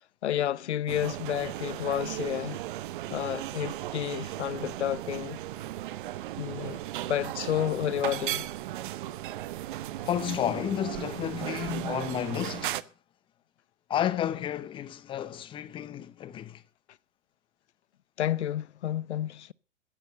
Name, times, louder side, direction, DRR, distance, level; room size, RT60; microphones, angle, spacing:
voice 1, 0.2-2.6 3.1-5.4 6.4-6.8 7.1-8.5 18.2-19.5, left 11 dB, 65° left, 0.7 m, -30 dB
sound 1, 0.9-12.8, right 14 dB, 45° right, 0.8 m, -36 dB
voice 2, 10.0-12.9 13.9-16.6, left 10 dB, 15° left, 0.7 m, -31 dB
15.0 x 10.5 x 5.5 m
figure-of-eight pair, 115°, 37 cm